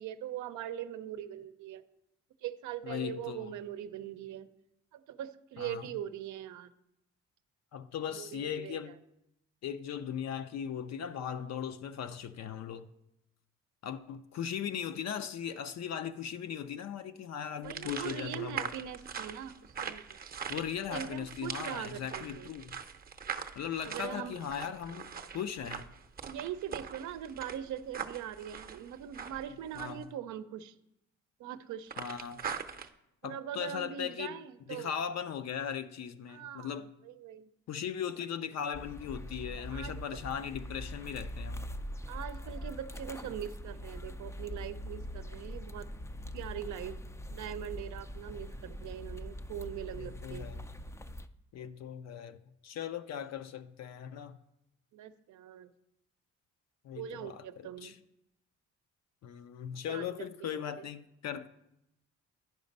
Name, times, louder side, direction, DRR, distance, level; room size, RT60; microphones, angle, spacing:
voice 1, 0.0-1.8 2.4-4.5 4.9-6.7 8.1-8.9 17.6-20.2 20.9-22.5 23.8-24.4 26.2-30.8 31.4-31.9 33.2-34.9 36.3-37.5 39.7-40.2 42.1-45.9 46.3-47.0 47.3-50.5 54.9-55.7 56.9-58.0 59.9-60.1 60.4-60.5 60.8-60.9, right 10 dB, 75° right, 0.6 m, -41 dB
voice 2, 2.8-3.5 5.6-5.9 7.7-8.9 9.6-12.9 13.8-18.7 20.5-22.8 23.6-25.1 25.3-25.9 29.8-30.1 32.0-32.5 33.2-34.4 34.7-36.9 37.7-41.6 49.9-50.6 51.5-54.4 56.8-58.0 59.2-61.5, left 8 dB, 60° left, 0.5 m, -38 dB
sound 1, 17.6-30.0 31.9-32.9, right 7 dB, 30° right, 0.7 m, -42 dB
sound 2, 38.7-51.3, equal, 10° left, 0.3 m, -42 dB
10.5 x 5.0 x 5.3 m
cardioid pair, 90°, 30 cm